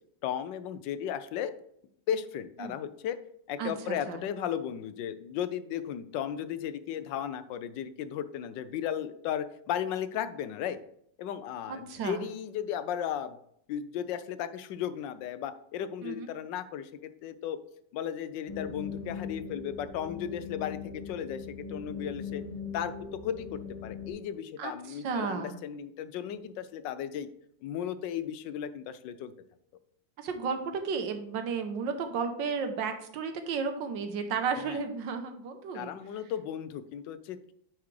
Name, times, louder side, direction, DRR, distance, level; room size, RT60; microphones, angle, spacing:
voice 1, 0.2-1.5 2.1-3.2 3.5-10.8 11.2-13.4 13.7-17.6 17.9-22.4 22.7-22.9 23.2-27.3 27.6-29.3 34.6-34.8 35.7-37.5, left 9 dB, 80° left, 12 dB, 1.3 m, -35 dB
voice 2, 3.6-4.2 11.7-12.2 16.0-16.3 24.6-25.5 30.2-35.9, right 5 dB, 80° right, 7 dB, 1.6 m, -33 dB
sound 1, 18.5-24.1, left 5 dB, 20° left, 1.3 m, -40 dB
9.3 x 4.9 x 3.2 m, 0.69 s
omnidirectional pair, 2.0 m